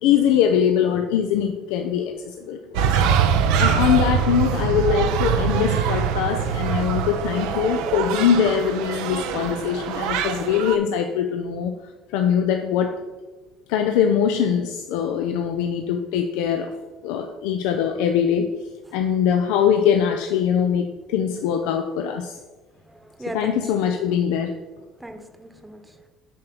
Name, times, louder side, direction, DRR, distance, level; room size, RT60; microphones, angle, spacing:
voice 1, 0.0-3.0 3.6-11.7 12.1-13.0 13.7-18.5 18.9-22.4 23.3-24.6, left 8 dB, 85° left, 5 dB, 0.4 m, -22 dB
sound 1, 2.7-10.8, right 7 dB, 80° right, 0.6 m, -23 dB
voice 2, 22.7-23.7 25.0-26.1, right 1 dB, 10° right, 6 dB, 1.0 m, -38 dB
7.1 x 3.3 x 6.1 m, 1.2 s
supercardioid pair, 80°, 0 cm